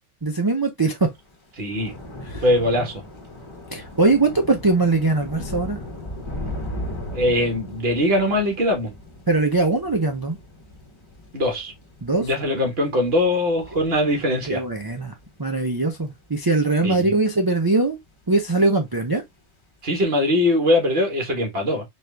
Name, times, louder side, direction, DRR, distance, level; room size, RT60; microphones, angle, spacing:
voice 1, 0.2-1.1 2.3-2.4 3.7-5.8 9.3-10.4 12.0-12.3 14.5-18.0 18.3-19.2, right 3 dB, 30° right, 0.4 m, -21 dB
Thunder / Rain, 1.2-17.7 18.1-18.5 18.8-19.0, left 1 dB, 25° left, 0.8 m, -38 dB
voice 2, 1.6-1.9 2.4-3.0 7.1-8.9 11.3-11.7 12.2-14.6 16.8-17.1 19.8-21.8, left 1 dB, 55° right, 1.6 m, -21 dB
4.3 x 2.4 x 3.2 m
omnidirectional pair, 1.3 m